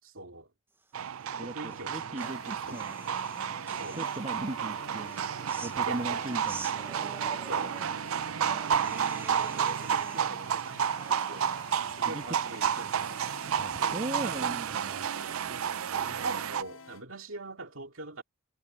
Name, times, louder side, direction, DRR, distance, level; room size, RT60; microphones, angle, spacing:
voice 1, 0.0-0.5 1.3-2.8 3.7-4.0 5.8-6.3 7.4-7.8 9.3-13.2 13.7-14.5 15.5-18.2, right 2 dB, 75° right, 2.4 m, -42 dB
sound 1, 0.9-16.6, right 8 dB, 90° right, 0.5 m, -31 dB
sound 2, 1.1-4.6 5.0-16.5, right 2 dB, 10° right, 0.7 m, -49 dB
voice 2, 1.4-3.0 3.9-5.1 5.4-6.7 12.0-12.2 13.6-15.1, right 1 dB, 35° right, 1.3 m, -38 dB
sound 3, 2.2-17.0, left 4 dB, 75° left, 1.3 m, -51 dB
head